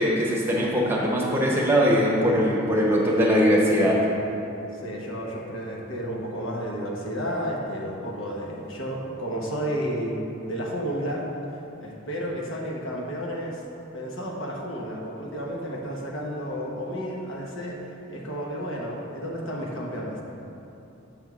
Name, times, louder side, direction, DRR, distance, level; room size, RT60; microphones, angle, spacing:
voice 1, 0.0-4.0, equal, 10° right, -4 dB, 0.9 m, -21 dB
voice 2, 4.7-11.3 11.8-13.6 13.9-20.2, equal, 80° left, -2 dB, 1.2 m, -32 dB
7.5 x 3.5 x 6.1 m, 2.9 s
head